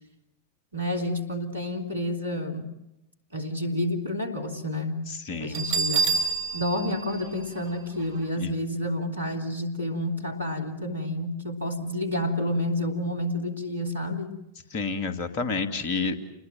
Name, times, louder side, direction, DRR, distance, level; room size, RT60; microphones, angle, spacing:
voice 1, 0.7-2.7 3.3-5.0 5.4-6.1 6.5-14.4, left 1 dB, 75° right, 5 dB, 3.2 m, -29 dB
voice 2, 5.1-5.6 8.4-8.5 14.7-16.2, left 4 dB, 45° left, 9 dB, 2.5 m, -29 dB
Bell, 5.5-8.2, right 4 dB, 50° right, 4.5 m, -28 dB
29.0 x 20.5 x 7.9 m, 0.88 s
figure-of-eight pair, 90°, 0 cm